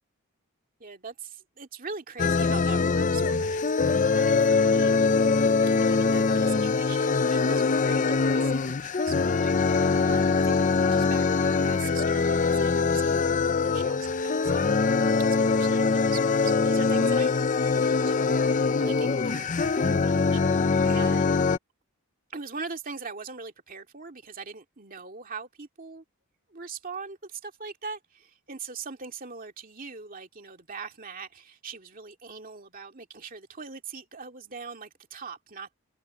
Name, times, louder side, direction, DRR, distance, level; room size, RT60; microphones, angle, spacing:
voice 1, 0.8-5.0 5.7-13.3 13.6-15.0 15.5-21.4 22.3-26.0 26.5-35.7, right 5 dB, 40° right, 2.4 m, -42 dB
sound 1, 2.2-21.6, left 4 dB, 35° left, 0.5 m, -23 dB
open air
head